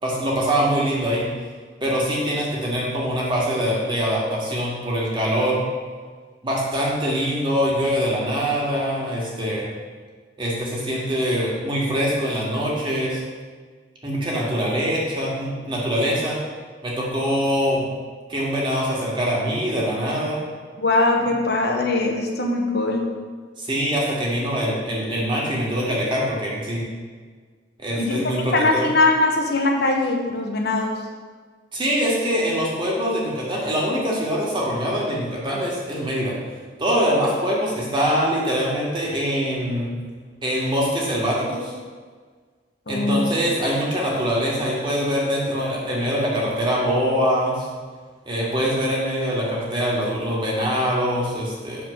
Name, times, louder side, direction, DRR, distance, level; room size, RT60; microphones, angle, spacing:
voice 1, 0.0-1.3 1.8-5.6 6.4-9.7 10.4-13.2 14.0-16.4 16.8-17.8 18.3-20.4 23.6-26.8 27.8-28.9 31.7-36.4 36.8-39.9 40.4-41.7 42.9-47.7 48.3-51.8, equal, 30° right, -4 dB, 2.0 m, -23 dB
voice 2, 20.8-23.1 28.0-31.0 42.9-43.3, left 2 dB, 65° left, 2 dB, 1.0 m, -21 dB
8.3 x 3.7 x 6.5 m, 1.5 s
head